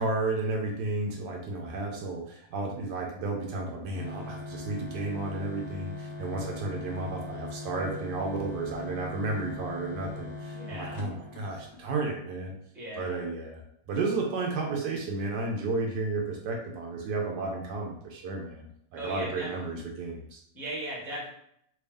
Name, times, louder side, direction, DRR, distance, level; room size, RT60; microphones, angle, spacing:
voice 1, 0.0-12.5 13.0-13.6 13.9-20.4, right 3 dB, 75° right, 1 dB, 1.2 m, -32 dB
sound 1, 3.9-12.0, left 3 dB, 65° left, 1.2 m, -41 dB
voice 2, 10.5-11.1 12.7-13.2 18.9-19.5 20.5-21.3, right 1 dB, ahead, -5 dB, 0.9 m, -38 dB
3.4 x 2.8 x 3.4 m, 0.71 s
omnidirectional pair, 1.9 m